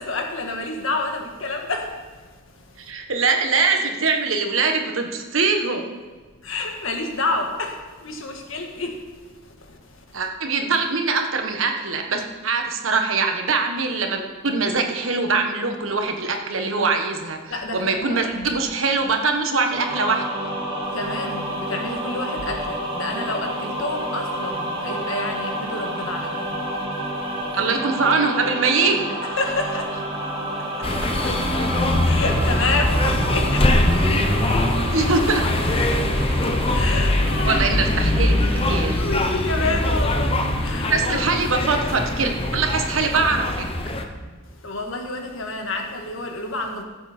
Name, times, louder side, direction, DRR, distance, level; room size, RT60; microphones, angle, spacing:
voice 1, 0.0-2.9 6.4-10.2 17.5-18.6 20.8-27.6 29.2-35.0 36.1-37.7 38.7-41.2 44.4-46.8, left 2 dB, 70° left, 3 dB, 1.7 m, -30 dB
voice 2, 2.8-5.8 10.1-17.4 17.7-20.3 27.5-29.0 34.9-35.7 37.4-38.4 38.7-39.0 40.9-43.6, right 4 dB, 75° right, 4 dB, 1.4 m, -22 dB
sound 1, 19.7-38.9, right 1 dB, 25° right, 2.1 m, -29 dB
sound 2, 30.8-44.0, left 1 dB, 30° left, 0.9 m, -22 dB
14.5 x 8.1 x 4.4 m, 1.4 s
head